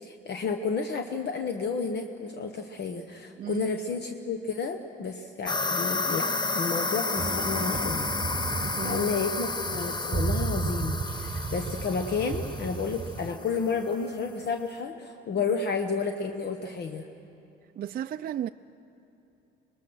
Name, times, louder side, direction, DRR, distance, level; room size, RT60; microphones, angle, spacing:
voice 1, 0.0-6.3 6.5-8.1 8.8-17.1, left 5 dB, 60° left, 1.1 m, -31 dB
sound 1, 5.5-13.7, left 3 dB, 20° left, 0.8 m, -31 dB
sound 2, 7.2-13.3, right 4 dB, 25° right, 1.1 m, -34 dB
voice 2, 8.6-9.3 15.4-15.5 17.8-18.5, right 10 dB, 50° right, 0.4 m, -35 dB
24.5 x 21.0 x 6.3 m
cardioid pair, 90°, 20 cm